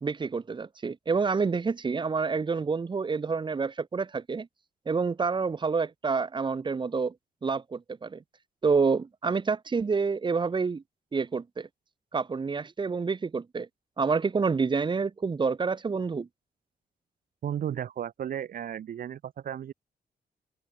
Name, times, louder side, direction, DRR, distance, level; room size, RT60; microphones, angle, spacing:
voice 1, 0.0-4.5 4.9-7.1 7.4-8.2 8.6-10.8 11.1-11.7 12.1-13.7 14.0-16.3, right 4 dB, 30° right, 1.0 m, -28 dB
voice 2, 17.4-19.7, right 9 dB, 60° right, 0.7 m, -34 dB
wide cardioid pair, 135°, 16 cm